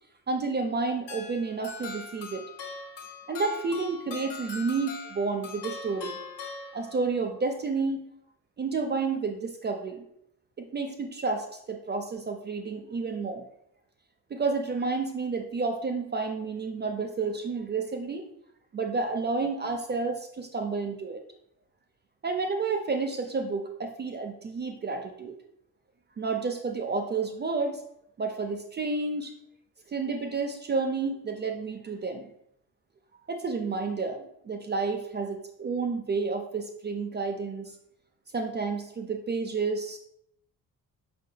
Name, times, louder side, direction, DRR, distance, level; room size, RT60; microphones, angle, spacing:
voice 1, 0.3-2.4 3.3-6.2 6.7-8.0 8.6-10.1 10.6-13.4 14.3-18.2 18.7-21.2 22.2-25.3 26.2-27.8 28.2-29.3 29.9-32.3 33.3-37.7 38.3-40.0, right 4 dB, 25° right, 4 dB, 0.4 m, -30 dB
sound 1, 1.1-7.2, left 4 dB, 55° left, 1.1 m, -41 dB
5.2 x 3.3 x 2.2 m, 0.75 s
hypercardioid pair, 40°, 49 cm